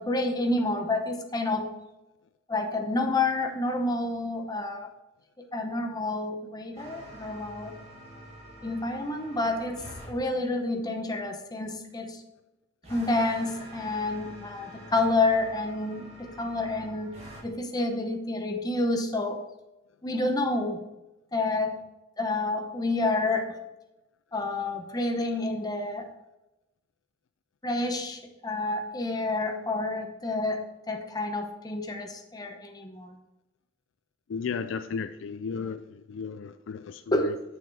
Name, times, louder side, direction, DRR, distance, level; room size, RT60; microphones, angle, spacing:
voice 1, 0.0-1.7 2.5-4.9 5.4-7.8 8.6-9.8 10.1-12.2 12.9-17.2 17.4-19.4 20.0-20.8 21.3-21.8 22.2-23.6 24.3-26.1 27.6-33.1 37.1-37.4, left 2 dB, 20° left, 4 dB, 0.9 m, -29 dB
sound 1, 6.7-10.1 12.8-17.4, right 1 dB, 35° right, 2.5 m, -46 dB
voice 2, 34.3-37.3, left 5 dB, 65° left, 10 dB, 0.4 m, -34 dB
6.8 x 6.3 x 4.1 m, 0.96 s
head